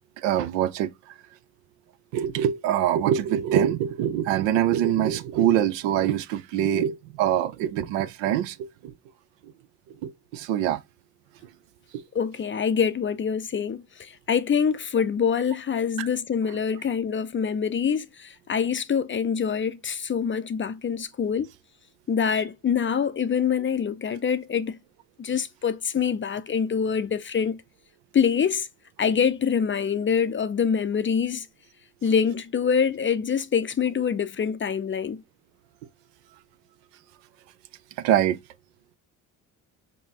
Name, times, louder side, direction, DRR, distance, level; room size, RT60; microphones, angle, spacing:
voice 1, 0.2-1.2 2.1-8.9 9.9-10.8 11.9-12.0 16.0-16.1 38.0-38.4, right 10 dB, 75° right, 0.6 m, -24 dB
voice 2, 12.1-21.5 22.1-24.8 25.2-27.6 28.1-28.7 29.0-31.5 32.0-35.2, left 7 dB, 30° left, 0.5 m, -25 dB
5.3 x 2.7 x 2.8 m
hypercardioid pair, 50°, 45 cm